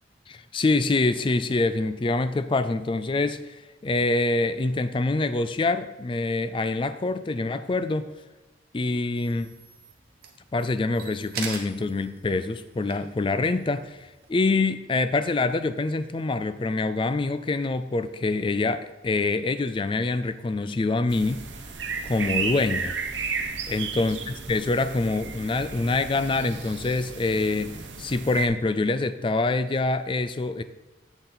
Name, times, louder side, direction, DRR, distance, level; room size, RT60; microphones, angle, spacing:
voice 1, 0.3-3.6 3.8-8.1 8.7-9.5 10.5-21.5 22.0-22.9 23.7-24.2 24.5-30.6, left 3 dB, 25° left, 12 dB, 0.4 m, -25 dB
sound 1, 9.2-14.3, right 5 dB, 55° right, 1.2 m, -42 dB
sound 2, 21.1-28.5, right 5 dB, 90° right, 0.9 m, -34 dB
8.1 x 6.8 x 3.9 m, 1.1 s
head